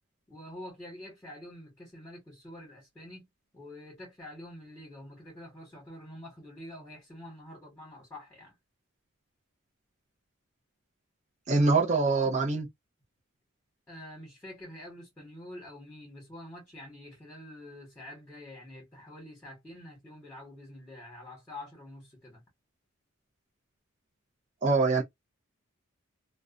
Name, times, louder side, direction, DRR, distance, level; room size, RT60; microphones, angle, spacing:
voice 1, 0.3-3.3 3.5-8.5 13.9-22.4, left 1 dB, 10° left, 1.2 m, -47 dB
voice 2, 11.5-12.7 24.6-25.0, right 3 dB, 35° right, 0.5 m, -24 dB
2.4 x 2.1 x 2.5 m
head